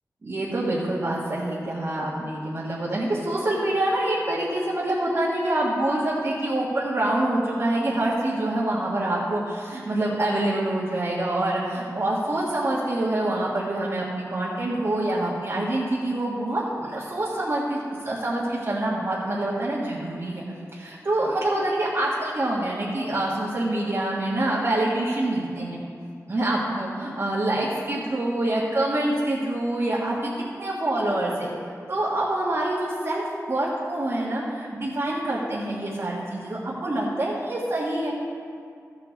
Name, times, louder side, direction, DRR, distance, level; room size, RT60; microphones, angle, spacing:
voice 1, 0.2-20.4 20.7-25.8 26.3-31.5 31.9-38.2, right 1 dB, 50° right, -8 dB, 1.7 m, -26 dB
14.0 x 7.4 x 4.0 m, 2.3 s
wide cardioid pair, 100°, 6 cm